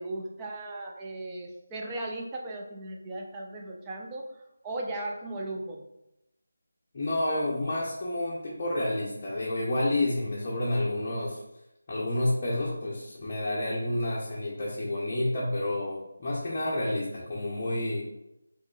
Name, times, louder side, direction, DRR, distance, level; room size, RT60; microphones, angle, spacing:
voice 1, 0.0-4.3 4.6-5.8, right 2 dB, 15° right, -1 dB, 0.5 m, -37 dB
voice 2, 6.9-11.4 11.9-18.1, left 1 dB, 30° left, -5 dB, 0.8 m, -29 dB
6.0 x 3.0 x 2.3 m, 0.88 s
figure-of-eight pair, 160°, 0 cm